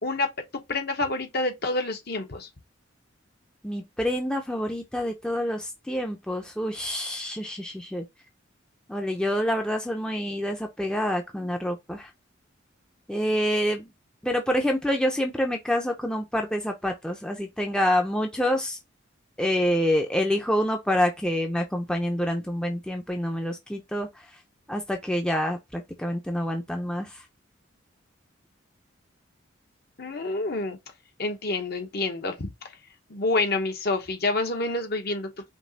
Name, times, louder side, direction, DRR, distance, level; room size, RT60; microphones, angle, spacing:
voice 1, 0.0-2.5 30.0-30.8 31.2-32.8 33.1-35.3, left 2 dB, 50° left, 0.9 m, -28 dB
voice 2, 3.6-8.0 8.9-12.1 13.1-13.9 14.2-18.8 19.4-24.1 24.7-27.2, equal, 5° left, 0.5 m, -27 dB
5.2 x 2.9 x 2.8 m
head